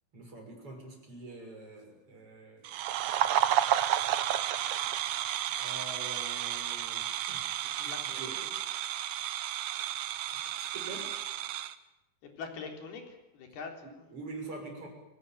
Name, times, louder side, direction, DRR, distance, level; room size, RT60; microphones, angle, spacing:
voice 1, 0.1-2.7 5.6-7.4 7.8-8.4 9.4-9.5 10.3-11.1 13.8-14.9, right 2 dB, 30° right, 2 dB, 7.1 m, -45 dB
sound 1, 2.6-11.7, right 11 dB, 75° right, 1.8 m, -32 dB
voice 2, 7.8-8.6 12.2-14.1, left 5 dB, 70° left, 3 dB, 5.7 m, -44 dB
29.5 x 18.5 x 9.2 m, 1.0 s
omnidirectional pair, 4.8 m